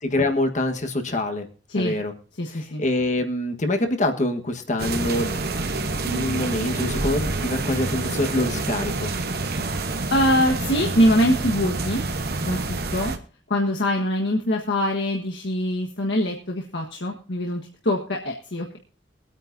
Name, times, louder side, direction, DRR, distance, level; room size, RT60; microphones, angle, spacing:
voice 1, 0.0-1.5 1.7-2.1 2.8-5.4 6.0-9.1, left 1 dB, 40° left, 6 dB, 1.4 m, -25 dB
voice 2, 2.4-2.8 10.1-12.0 12.4-13.1 13.5-18.8, equal, 75° left, -1 dB, 1.4 m, -23 dB
sound 1, 4.8-13.2, right 2 dB, 60° right, 1.1 m, -27 dB
23.0 x 9.0 x 2.7 m, 0.40 s
head